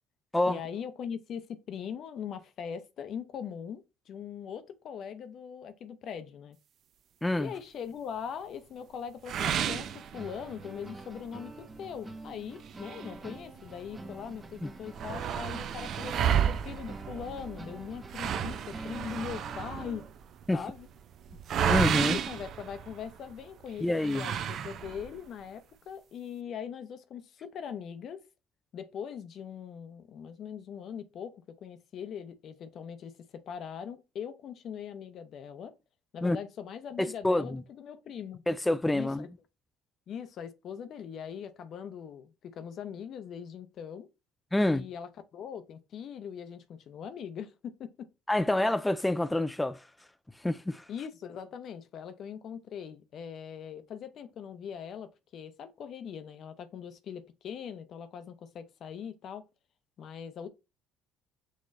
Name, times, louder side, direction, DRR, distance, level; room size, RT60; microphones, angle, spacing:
voice 1, 0.5-6.6 7.4-20.1 20.5-20.9 22.0-28.2 28.7-35.7 36.1-38.4 38.9-39.3 40.1-44.1 44.6-48.1 50.9-59.5 60.0-60.5, left 8 dB, 55° left, 0.7 m, -41 dB
sound 1, 9.3-20.1, right 2 dB, 20° right, 0.8 m, -46 dB
sound 2, 9.3-10.7 11.2-11.3 11.7-11.8 12.6-13.9 14.3-14.4 14.6-23.3 24.0-25.2, right 9 dB, 55° right, 0.5 m, -32 dB
voice 2, 21.7-22.2 23.8-24.3 36.2-36.4 37.0-37.6 38.5-39.3 44.5-44.9 48.3-49.8 50.4-50.9, left 1 dB, 10° left, 0.3 m, -27 dB
6.4 x 3.0 x 2.6 m
supercardioid pair, 80°, 0 cm